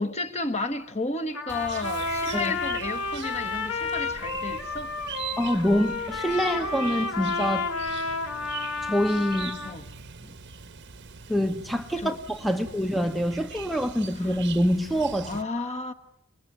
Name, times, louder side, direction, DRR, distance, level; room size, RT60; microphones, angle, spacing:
voice 1, 0.0-4.9 9.6-9.9 12.0-12.2 12.5-12.6 14.1-14.4 15.2-15.9, left 2 dB, 30° left, 1.5 m, -32 dB
Trumpet, 1.3-9.8, left 4 dB, 80° left, 3.0 m, -31 dB
Chirp tweet, 1.5-15.4, right 6 dB, 55° right, 1.2 m, -42 dB
voice 2, 5.4-7.7 8.8-9.6 11.3-15.4, equal, ahead, 1.0 m, -26 dB
29.5 x 20.5 x 9.4 m
head